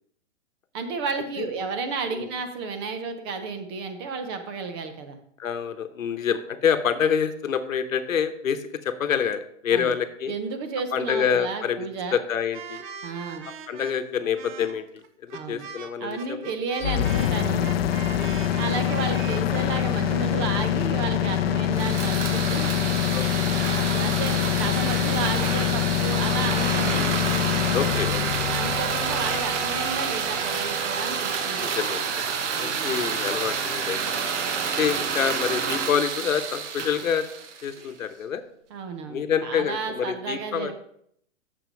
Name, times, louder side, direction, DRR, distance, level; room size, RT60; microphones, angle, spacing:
voice 1, 0.7-5.2 9.7-9.9 10.3-12.2 13.0-13.5 15.3-15.6 16.0-17.7 18.5-22.7 23.7-27.1 28.5-31.8 32.5-32.9 38.7-40.7, right 4 dB, 20° right, 7 dB, 0.5 m, -32 dB
voice 2, 5.4-10.3 10.9-12.8 13.4-16.5 18.1-18.5 23.1-23.5 26.9-28.8 31.6-32.3 32.6-34.0 34.8-37.2 37.6-38.4 39.1-40.7, left 7 dB, 85° left, 10 dB, 1.0 m, -27 dB
sound 1, 12.5-20.8, right 7 dB, 35° right, 0.9 m, -41 dB
sound 2, 16.8-30.7, left 10 dB, 50° left, 0.5 m, -25 dB
sound 3, 21.7-37.9, right 6 dB, 65° right, 1.2 m, -29 dB
6.9 x 5.9 x 5.0 m, 0.68 s
hypercardioid pair, 140°, 39 cm